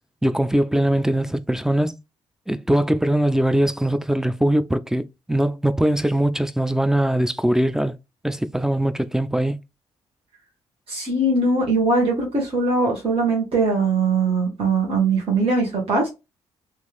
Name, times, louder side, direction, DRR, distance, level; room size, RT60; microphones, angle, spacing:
voice 1, 0.2-2.0 2.5-5.0 5.3-7.9 8.2-9.6, right 1 dB, 5° right, 0.3 m, -21 dB
voice 2, 10.9-16.1, right 3 dB, 40° right, 1.2 m, -21 dB
2.9 x 2.5 x 2.3 m
figure-of-eight pair, 40°, 14 cm